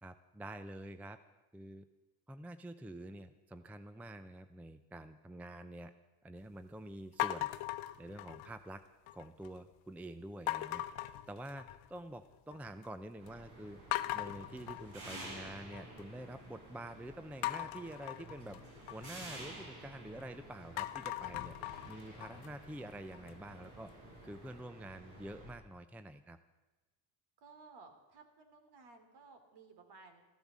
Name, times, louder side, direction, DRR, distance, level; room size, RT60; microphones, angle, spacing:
voice 1, 0.0-1.2 1.5-1.8 2.3-5.9 6.2-7.5 8.0-8.8 9.1-13.8 14.1-21.5 21.8-23.9 24.2-26.4, right 1 dB, 5° right, 11 dB, 0.5 m, -47 dB
sound 1, 7.2-8.7 9.1-9.6 10.5-12.0 12.3-12.9 13.3-13.4 13.9-16.0 17.4-20.2 20.6-23.5, left 16 dB, 85° left, 0.8 m, -40 dB
sound 2, 13.2-25.5, right 1 dB, 80° right, 6.7 m, -52 dB
voice 2, 27.4-30.2, right 4 dB, 55° right, 6 dB, 3.0 m, -57 dB
14.5 x 12.0 x 7.4 m, 1.1 s
cardioid pair, 115°, 47 cm